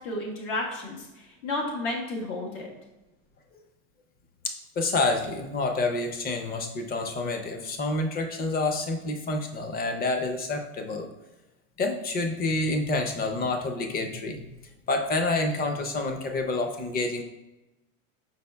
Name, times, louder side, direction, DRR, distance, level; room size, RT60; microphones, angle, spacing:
voice 1, 0.0-2.7, left 2 dB, 80° left, -2 dB, 1.4 m, -32 dB
voice 2, 4.4-11.1 11.8-17.2, left 2 dB, 25° left, 5 dB, 0.5 m, -28 dB
5.3 x 4.1 x 2.2 m, 1.0 s
supercardioid pair, 120°, 39 cm